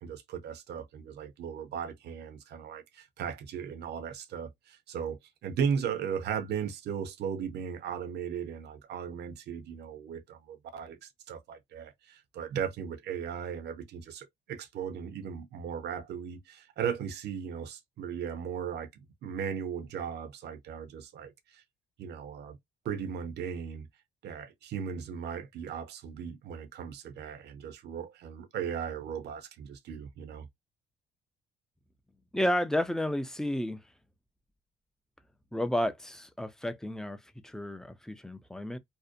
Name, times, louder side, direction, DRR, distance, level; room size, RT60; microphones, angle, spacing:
voice 1, 0.0-18.9 19.2-21.6 22.0-22.6 22.8-23.9 24.2-30.5, right 7 dB, 60° right, 0.6 m, -37 dB
voice 2, 32.3-33.8 35.5-38.8, left 1 dB, 5° left, 0.4 m, -32 dB
2.6 x 2.0 x 2.5 m
cardioid pair, 85°, 19 cm